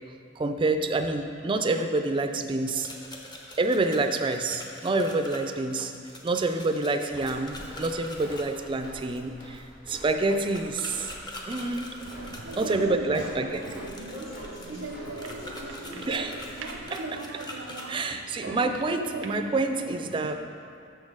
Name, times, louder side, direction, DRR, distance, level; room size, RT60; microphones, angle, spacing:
voice 1, 0.4-2.9 3.6-5.9 6.2-11.1 11.5-12.0 12.6-13.6 16.1-16.3 16.9-17.2 17.9-20.4, right 2 dB, 25° right, 6 dB, 0.4 m, -27 dB
sound 1, 2.6-8.4 10.5-12.7 13.5-17.9, left 1 dB, 20° left, 0.7 m, -44 dB
Walk footsteps, 7.1-16.8, equal, 45° left, 1.6 m, -47 dB
sound 2, 12.0-20.3, right 3 dB, 90° right, 0.6 m, -39 dB
voice 2, 12.4-16.8, equal, 80° left, -7 dB, 1.8 m, -43 dB
6.4 x 6.4 x 4.9 m, 2.4 s
head